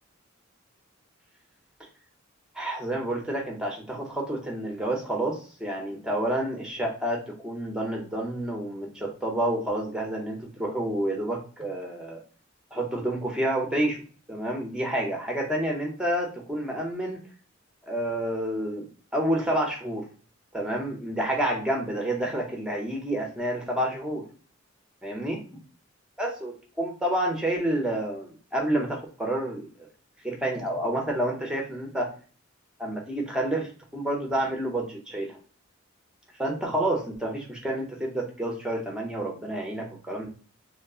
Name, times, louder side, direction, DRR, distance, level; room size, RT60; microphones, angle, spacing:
voice 1, 2.5-12.2 12.7-14.0 14.3-17.2 17.9-18.9 19.1-20.1 20.5-24.2 25.0-25.4 26.2-29.9 30.2-32.1 32.8-35.4 36.4-40.3, right 1 dB, 5° right, 1 dB, 0.6 m, -29 dB
2.4 x 2.0 x 3.5 m, 0.39 s
head